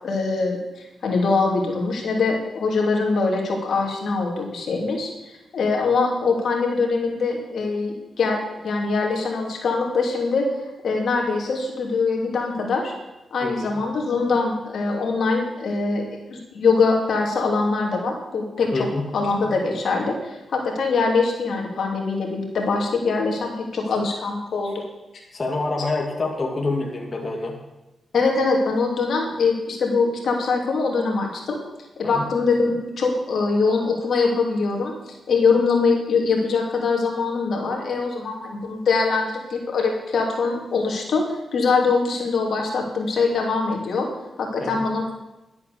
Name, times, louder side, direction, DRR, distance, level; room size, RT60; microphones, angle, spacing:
voice 1, 0.0-10.4 10.8-12.9 13.3-18.7 19.1-24.8 28.1-31.6 32.0-44.1 44.4-45.1, left 4 dB, 70° left, 0 dB, 2.7 m, -23 dB
voice 2, 13.4-13.8 18.7-19.0 25.3-27.6 32.0-32.3 44.6-44.9, left 2 dB, 35° left, 0 dB, 2.0 m, -27 dB
11.5 x 8.3 x 6.8 m, 0.98 s
cardioid pair, 80°, 0 cm